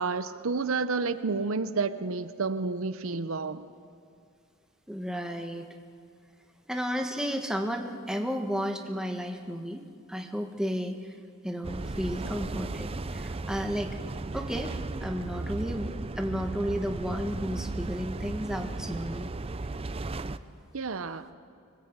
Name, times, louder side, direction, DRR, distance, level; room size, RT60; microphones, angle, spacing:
voice 1, 0.0-3.7 20.7-21.3, right 4 dB, 70° right, 0.8 m, -30 dB
voice 2, 4.9-5.7 6.7-11.1 11.4-14.0 14.3-19.3, equal, 5° right, 1.3 m, -33 dB
sound 1, 11.6-20.4, right 2 dB, 25° right, 0.5 m, -35 dB
25.0 x 21.0 x 8.1 m
head